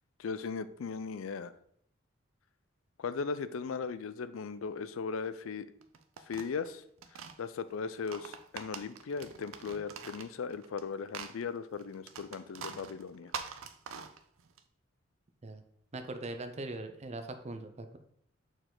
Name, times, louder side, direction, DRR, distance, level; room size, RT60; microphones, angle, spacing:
voice 1, 0.2-1.5 3.0-5.7 6.2-6.8 7.1-13.3, left 5 dB, 75° left, 14 dB, 0.4 m, -38 dB
sound 1, 5.8-7.4 7.9-10.8 11.1-14.6, right 6 dB, 80° right, 0.5 m, -44 dB
voice 2, 15.9-18.0, right 2 dB, 35° right, 7 dB, 0.6 m, -41 dB
6.5 x 4.6 x 3.8 m, 0.68 s
head